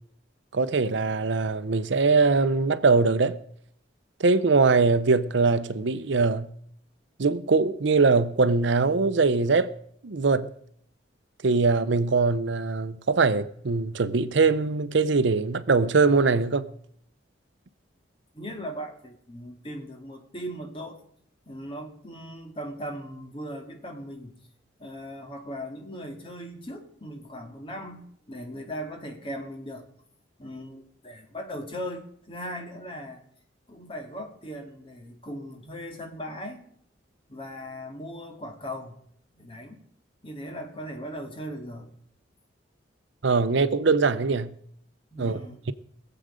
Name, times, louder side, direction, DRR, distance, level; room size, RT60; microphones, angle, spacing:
voice 1, 0.5-3.4 4.2-6.5 7.2-9.7 10.0-10.5 11.4-16.7 43.2-44.5 45.2-45.4, right 4 dB, 70° right, 0.6 m, -22 dB
voice 2, 18.3-21.0 21.5-24.4 24.8-29.9 30.4-33.2 33.7-36.7 37.3-39.0 39.3-39.8 40.2-41.9 45.1-45.7, equal, 25° left, 2.0 m, -38 dB
22.0 x 7.9 x 5.0 m
head